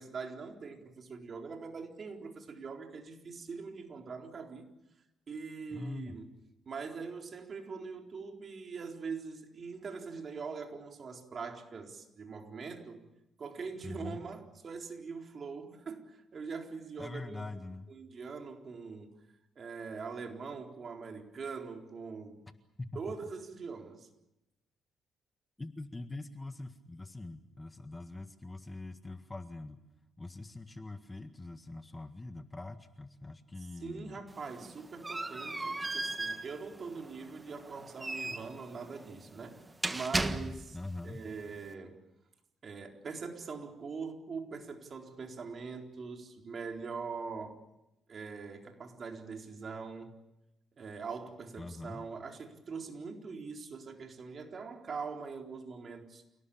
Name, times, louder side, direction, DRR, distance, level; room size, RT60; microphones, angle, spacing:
voice 1, 0.0-4.7 5.3-6.3 6.7-13.0 13.4-17.4 17.9-19.1 19.6-22.4 22.9-24.1 33.8-39.6 39.9-40.8 41.0-42.0 42.6-47.6 48.1-50.2 50.8-56.2, right 5 dB, 45° right, 3 dB, 4.1 m, -42 dB
voice 2, 5.7-6.2 13.8-14.2 17.0-17.9 22.8-23.0 25.6-29.8 30.2-34.2 40.7-41.2 51.6-52.1, left 2 dB, 20° left, 8 dB, 1.7 m, -43 dB
sound 1, 34.3-40.9, right 2 dB, 20° right, 1.6 m, -37 dB
28.5 x 18.5 x 8.7 m, 0.92 s
cardioid pair, 90°, 0 cm